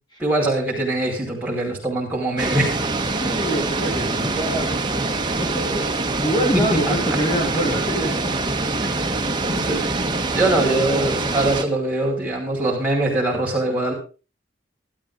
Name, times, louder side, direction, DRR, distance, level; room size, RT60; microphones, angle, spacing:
voice 1, 0.2-2.7 6.5-7.2 8.8-8.9 9.5-13.9, right 1 dB, 10° right, -3 dB, 5.1 m, -23 dB
sound 1, 2.4-11.6, right 3 dB, 25° right, 1.1 m, -24 dB
voice 2, 3.2-5.9 6.2-8.7, equal, 25° left, -1 dB, 2.6 m, -26 dB
13.0 x 13.0 x 3.8 m, 0.33 s
head